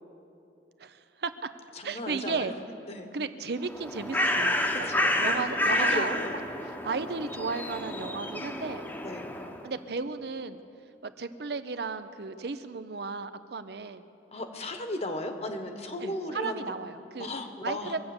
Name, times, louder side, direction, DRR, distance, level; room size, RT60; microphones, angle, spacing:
voice 1, 0.8-1.5 1.8-2.5 3.1-4.9 5.2-6.2 6.7-8.9 9.6-10.6 11.0-14.0 16.0-17.3 17.6-18.0, right 4 dB, 65° right, 11 dB, 0.7 m, -34 dB
voice 2, 1.8-2.5 2.9-3.1 4.7-5.2 5.7-6.4 9.0-9.3 14.3-16.6 17.2-17.9, left 2 dB, 35° left, 6 dB, 1.2 m, -35 dB
Bird, 3.6-9.7, left 1 dB, 10° left, 0.9 m, -29 dB
23.5 x 8.1 x 7.1 m, 2.8 s
head